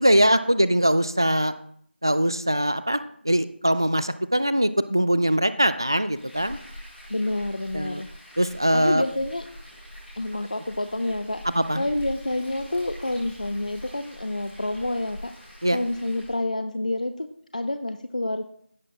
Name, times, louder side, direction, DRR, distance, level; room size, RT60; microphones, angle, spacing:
voice 1, 0.0-1.5 2.0-6.6 7.7-8.0 8.4-9.0 11.4-11.8 15.6-15.8, equal, 20° right, 14 dB, 0.3 m, -22 dB
Frying (food), 6.0-16.4, equal, ahead, 1.0 m, -44 dB
voice 2, 7.1-8.1 8.7-9.5 10.2-11.4 11.8-17.3 17.5-18.4, left 1 dB, 40° left, 8 dB, 0.6 m, -28 dB
16.0 x 5.9 x 3.6 m, 0.63 s
figure-of-eight pair, 175°, 6 cm